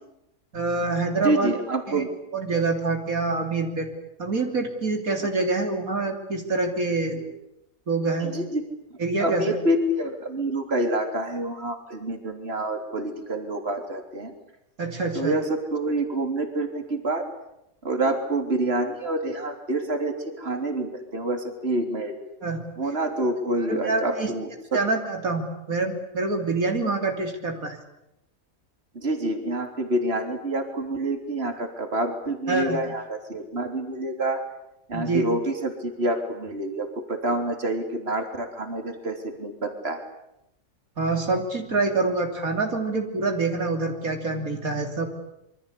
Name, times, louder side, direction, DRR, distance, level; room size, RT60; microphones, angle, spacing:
voice 1, 0.5-1.5 1.9-2.0 2.3-3.9 4.2-7.3 7.9-8.3 9.0-9.5 14.8-15.4 22.4-22.6 23.7-24.3 24.7-27.8 32.5-32.9 34.9-35.3 41.0-45.1, right 3 dB, 80° right, 4 dB, 3.7 m, -26 dB
voice 2, 1.2-2.1 8.2-8.6 9.2-14.4 15.2-17.3 17.8-22.2 22.8-24.5 28.9-34.4 34.9-40.1, right 1 dB, 45° right, 5 dB, 3.7 m, -27 dB
27.0 x 24.5 x 8.5 m, 0.82 s
omnidirectional pair, 1.5 m